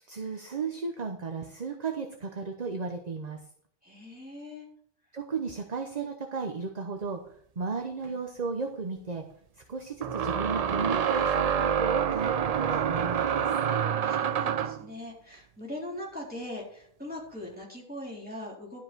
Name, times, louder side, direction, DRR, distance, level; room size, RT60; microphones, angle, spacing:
voice 1, 0.1-3.4 5.1-9.2 9.7-13.5, right 4 dB, 40° right, 4 dB, 1.0 m, -34 dB
voice 2, 3.8-4.7 14.0-18.8, left 1 dB, 10° right, -4 dB, 3.8 m, -41 dB
sound 1, 8.1-8.2 10.0-14.9, right 8 dB, 55° right, 0.4 m, -27 dB
12.5 x 5.3 x 6.1 m, 0.62 s
omnidirectional pair, 1.1 m